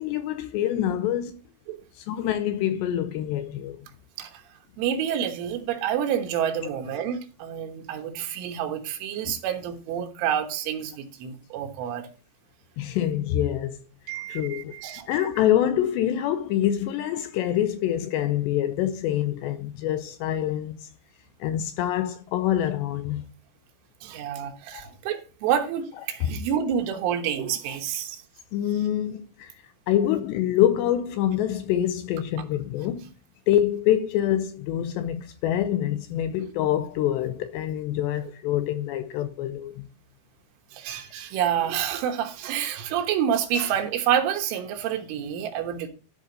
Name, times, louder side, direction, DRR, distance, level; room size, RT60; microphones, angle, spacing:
voice 1, 0.0-1.4 2.0-3.8 9.2-9.3 12.8-13.8 14.3-14.7 15.1-20.8 21.4-23.2 24.7-24.9 26.3-26.4 28.5-29.5 29.9-33.1 33.5-39.9, left 11 dB, 80° left, 2.6 m, -26 dB
voice 2, 4.8-12.1 14.1-15.2 24.0-28.2 40.7-45.9, right 9 dB, 90° right, 3.7 m, -28 dB
13.0 x 5.6 x 3.9 m
omnidirectional pair, 5.4 m